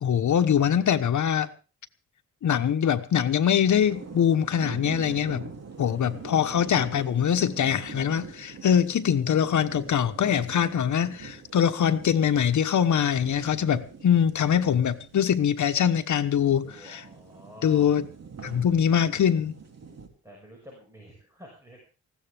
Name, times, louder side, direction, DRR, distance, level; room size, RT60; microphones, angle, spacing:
voice 1, 0.0-1.5 2.4-5.4 5.8-17.0 17.6-18.1 18.4-19.6, left 8 dB, 80° left, 1.2 m, -23 dB
sound 1, 3.7-20.1, right 5 dB, 60° right, 2.9 m, -44 dB
voice 2, 5.7-6.7 16.6-18.0 20.2-21.8, equal, 10° right, 5.7 m, -49 dB
20.0 x 16.0 x 3.5 m
wide cardioid pair, 155°, 29 cm